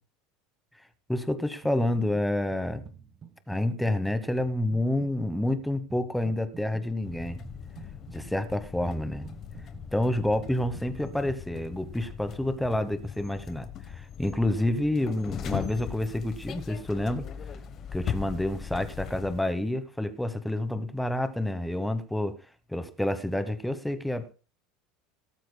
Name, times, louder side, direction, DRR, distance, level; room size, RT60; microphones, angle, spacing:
voice 1, 1.1-2.8 3.5-7.4 8.1-9.3 9.9-13.7 14.2-17.3 17.9-22.4 22.7-24.3, left 1 dB, ahead, 1.0 m, -28 dB
sound 1, 2.8-11.4, right 6 dB, 20° right, 1.2 m, -49 dB
sound 2, 7.0-19.4, left 8 dB, 30° left, 1.1 m, -39 dB
19.0 x 13.0 x 2.2 m
cardioid pair, 170°, 0 cm